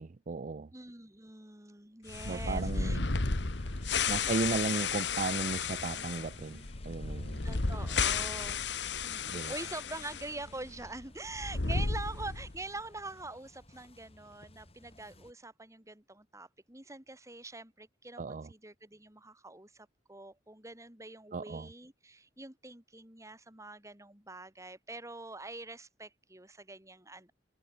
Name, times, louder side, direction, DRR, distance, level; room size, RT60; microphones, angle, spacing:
voice 1, 0.0-0.7 2.3-3.0 4.1-7.5 9.3-9.5 18.2-18.5 21.3-21.7, right 4 dB, 45° right, 0.5 m, -35 dB
voice 2, 0.7-3.0 3.8-4.1 7.4-8.6 9.0-27.3, right 2 dB, 15° right, 3.9 m, -45 dB
sound 1, 2.1-10.3 10.5-10.6 11.3-12.6, left 4 dB, 70° left, 1.5 m, -33 dB
sound 2, 2.4-15.3, left 1 dB, 35° left, 5.9 m, -55 dB
head